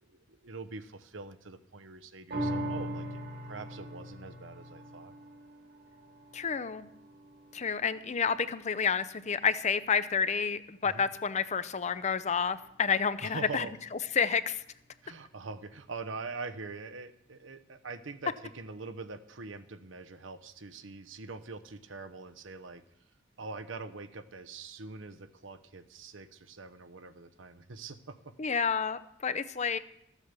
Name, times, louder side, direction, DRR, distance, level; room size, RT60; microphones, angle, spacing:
voice 1, 0.1-5.1 10.8-11.1 13.2-13.7 15.0-22.8 23.4-28.3, right 3 dB, 75° right, 10 dB, 0.9 m, -44 dB
sound 1, 2.3-9.0 9.4-9.5, right 1 dB, 55° right, 1.8 m, -40 dB
voice 2, 6.3-6.9 7.5-13.7 14.1-14.6 28.4-29.8, left 6 dB, 35° left, 13 dB, 0.6 m, -29 dB
14.0 x 8.3 x 6.8 m, 0.77 s
head